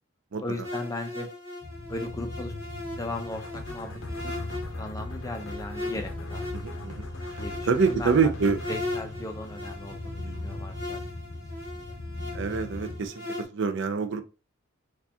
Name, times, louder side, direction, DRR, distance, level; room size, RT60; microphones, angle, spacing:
voice 1, 0.4-1.3 1.9-2.5 2.9-4.3 4.8-6.5 7.4-8.3 8.7-11.0 11.3-11.4 11.7-11.9, left 2 dB, 15° left, 0.5 m, -37 dB
sound 1, 0.6-13.4, left 2 dB, 15° right, 1.5 m, -39 dB
sound 2, 1.6-13.1, left 2 dB, 40° left, 1.0 m, -39 dB
sound 3, 3.3-10.1, left 3 dB, 65° left, 0.6 m, -44 dB
voice 2, 6.5-7.4 7.7-8.6 10.2-10.5 12.3-14.2, right 5 dB, 60° right, 0.5 m, -26 dB
4.6 x 2.4 x 2.7 m
head